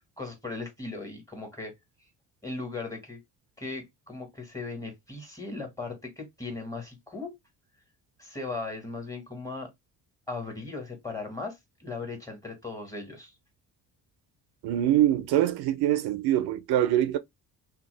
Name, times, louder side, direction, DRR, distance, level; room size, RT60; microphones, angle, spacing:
voice 1, 0.2-1.7 2.4-3.2 3.6-7.3 8.2-9.7 10.3-13.3, left 3 dB, 10° left, 1.7 m, -37 dB
voice 2, 14.6-17.2, right 12 dB, 75° right, 0.5 m, -24 dB
2.8 x 2.3 x 3.1 m
cardioid pair, 85°, 39 cm